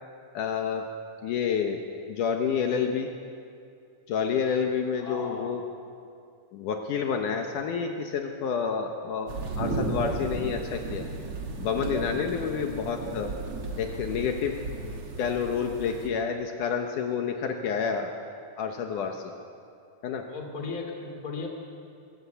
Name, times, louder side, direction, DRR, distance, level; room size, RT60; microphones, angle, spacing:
voice 1, 0.3-0.9 1.2-3.1 4.1-5.6 6.5-11.1 11.6-13.3 13.8-14.5 15.2-18.1 18.6-19.2 20.0-20.3, left 6 dB, 70° left, 4 dB, 2.5 m, -29 dB
voice 2, 5.0-5.6 20.3-21.5, left 4 dB, 30° left, 2 dB, 2.7 m, -36 dB
sound 1, 9.3-16.1, right 3 dB, 45° right, 2.5 m, -34 dB
23.0 x 14.0 x 8.2 m, 2.4 s
omnidirectional pair, 3.9 m